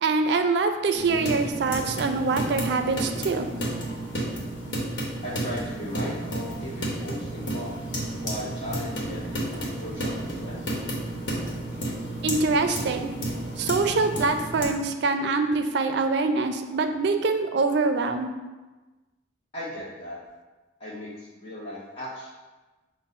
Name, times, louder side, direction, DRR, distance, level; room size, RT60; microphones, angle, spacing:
voice 1, 0.0-3.5 12.2-13.1 13.6-18.3, right 3 dB, 65° right, 7 dB, 0.4 m, -24 dB
sound 1, 0.9-14.7, right 1 dB, 80° left, 1.0 m, -32 dB
voice 2, 5.2-7.7 8.2-10.5 19.5-20.2 20.8-22.3, equal, 30° left, -9 dB, 0.8 m, -37 dB
5.2 x 2.0 x 4.1 m, 1.2 s
head